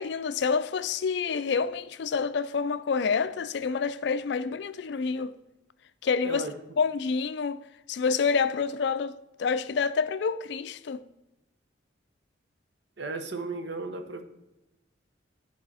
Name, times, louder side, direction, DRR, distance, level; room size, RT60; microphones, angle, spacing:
voice 1, 0.0-5.4 6.0-6.4 6.8-7.6 7.9-11.0, left 5 dB, 60° left, 0.4 m, -28 dB
voice 2, 13.0-14.2, right 3 dB, 65° right, 0.9 m, -34 dB
11.0 x 4.8 x 4.1 m
head